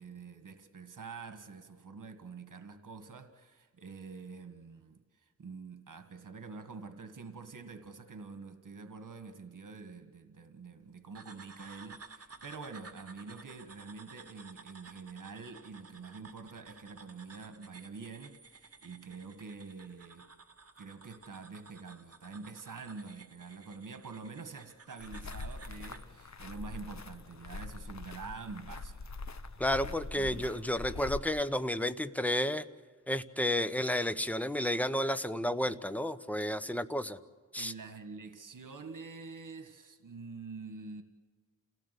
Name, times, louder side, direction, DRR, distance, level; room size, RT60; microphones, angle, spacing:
voice 1, 0.0-20.3 20.8-29.1 30.1-30.5 35.7-35.8 37.6-41.0, right 4 dB, 70° right, 1.8 m, -46 dB
sound 1, 11.1-26.1, right 4 dB, 45° right, 2.3 m, -54 dB
sound 2, 25.0-31.2, left 3 dB, 55° left, 1.3 m, -43 dB
voice 2, 29.6-32.6 33.1-37.2 37.5-37.7, left 1 dB, 5° left, 1.0 m, -31 dB
29.0 x 17.5 x 8.3 m
wide cardioid pair, 85°, 32 cm